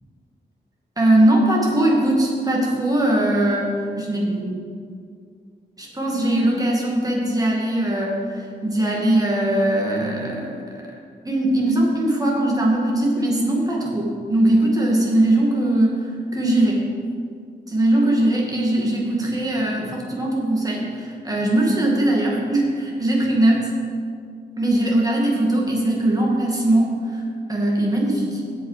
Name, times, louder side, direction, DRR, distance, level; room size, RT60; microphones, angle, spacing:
voice 1, 1.0-4.6 5.8-10.6 11.3-16.8 17.7-23.7 24.6-27.2 27.5-28.4, right 1 dB, 20° right, -3 dB, 2.1 m, -20 dB
16.0 x 5.5 x 5.0 m, 2.2 s
wide cardioid pair, 140°, 18 cm